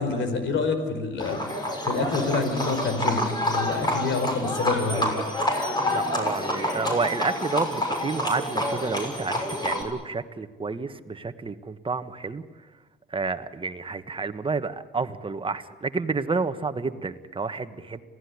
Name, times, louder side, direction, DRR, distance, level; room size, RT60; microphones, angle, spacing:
voice 1, 0.0-1.4 1.8-5.2, left 4 dB, 75° left, 9 dB, 4.5 m, -27 dB
Livestock farm animals working animals, 1.2-9.8, left 1 dB, 20° left, 6.4 m, -28 dB
voice 2, 5.9-12.4 13.1-18.0, right 4 dB, 25° right, 10 dB, 1.5 m, -30 dB
26.5 x 17.5 x 9.7 m, 1.3 s
cardioid pair, 90°, 20 cm